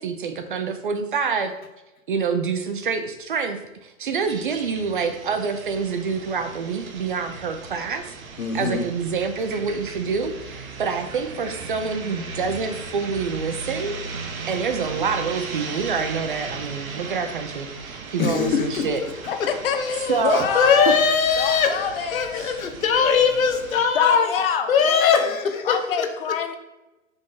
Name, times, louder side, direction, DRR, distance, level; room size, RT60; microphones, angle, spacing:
voice 1, 0.0-1.5 2.1-8.1 8.5-13.9 14.2-19.0 20.1-21.0 22.3-22.6, right 5 dB, 40° right, 8 dB, 0.5 m, -27 dB
sound 1, 4.2-23.8, right 4 dB, 85° right, 1.2 m, -37 dB
voice 2, 8.4-8.8 18.2-18.9 19.4-24.3 24.7-26.1, left 6 dB, 80° left, 7 dB, 1.1 m, -21 dB
voice 3, 19.3-20.9 21.4-22.4 23.9-25.4 25.6-26.5, left 7 dB, 45° left, 7 dB, 0.7 m, -26 dB
5.3 x 3.5 x 5.5 m, 1.0 s
hypercardioid pair, 160°, 41 cm